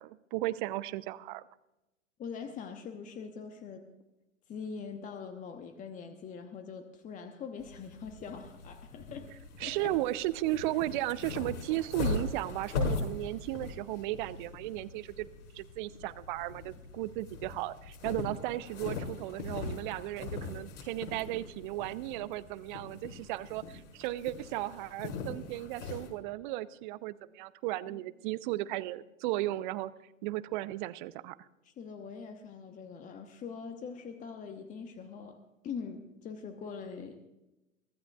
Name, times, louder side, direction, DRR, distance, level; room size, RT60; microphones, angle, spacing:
voice 1, 0.0-1.4 9.6-15.3 15.5-29.9 30.2-31.5, right 16 dB, 40° right, 16 dB, 0.7 m, -35 dB
voice 2, 2.2-3.9 4.5-9.3 9.6-9.9 27.8-28.0 31.6-37.3, left 6 dB, 20° left, 6 dB, 1.1 m, -43 dB
sound 1, 7.6-26.1, left 4 dB, 60° left, 5.1 m, -40 dB
23.5 x 16.0 x 2.4 m, 0.95 s
figure-of-eight pair, 105°, 40 cm